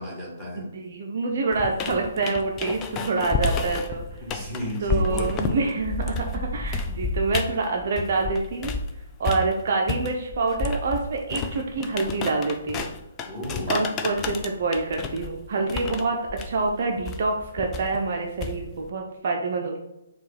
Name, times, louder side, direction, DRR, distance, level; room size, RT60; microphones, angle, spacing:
voice 1, 0.0-0.7 4.2-5.7 6.5-6.8 9.2-9.4 13.3-13.8, left 1 dB, 5° right, -4 dB, 1.6 m, -34 dB
voice 2, 0.6-4.0 4.3-4.4 4.8-8.7 9.2-12.9 13.7-16.2 16.4-19.8, right 3 dB, 45° right, 1 dB, 0.6 m, -26 dB
sound 1, 1.5-8.9 9.2-18.9, left 4 dB, 20° left, 0.4 m, -31 dB
4.5 x 2.4 x 4.7 m, 0.90 s
figure-of-eight pair, 130°, 0 cm